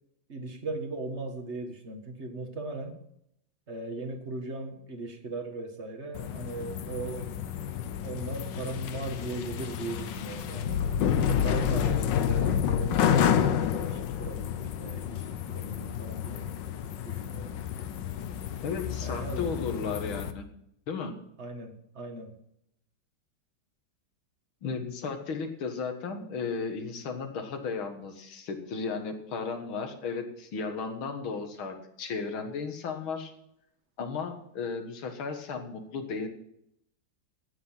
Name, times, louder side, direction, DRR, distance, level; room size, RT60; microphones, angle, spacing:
voice 1, 0.3-3.0 3.7-7.4 8.0-10.8 11.3-16.5 17.0-17.5 19.0-19.5 21.4-22.3, right 3 dB, 35° right, 5 dB, 1.8 m, -38 dB
sound 1, 6.2-20.3, left 8 dB, 65° left, 1.4 m, -29 dB
voice 2, 18.6-20.5 20.9-21.2 24.6-33.3 34.0-36.3, left 5 dB, 90° left, 5 dB, 2.4 m, -34 dB
14.0 x 9.6 x 5.7 m, 0.74 s
omnidirectional pair, 2.2 m